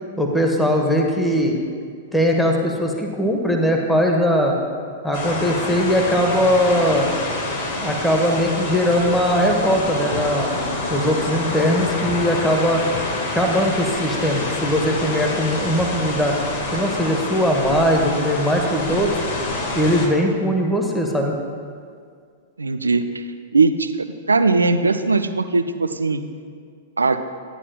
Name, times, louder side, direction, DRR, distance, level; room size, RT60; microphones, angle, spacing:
voice 1, 0.2-1.6 2.1-4.6 5.0-7.1 7.8-10.6 10.9-12.8 13.3-16.3 16.7-19.1 19.8-21.3, equal, 5° left, 1 dB, 1.2 m, -20 dB
sound 1, 5.1-20.1, left 2 dB, 60° left, 1.8 m, -27 dB
sound 2, 9.4-9.5 10.1-10.3 10.8-10.9 12.0-12.3 12.9-14.0 14.3-14.4 14.7-14.8 15.0-15.1 15.4-15.5 15.7-16.2 16.4-16.6 16.8-16.9 17.2-17.3, left 4 dB, 40° left, 1.1 m, -38 dB
voice 2, 22.6-23.3 23.5-26.2 27.0-27.2, right 3 dB, 85° right, 10 dB, 0.4 m, -19 dB
12.5 x 9.8 x 2.3 m, 2.1 s
figure-of-eight pair, 105°, 0 cm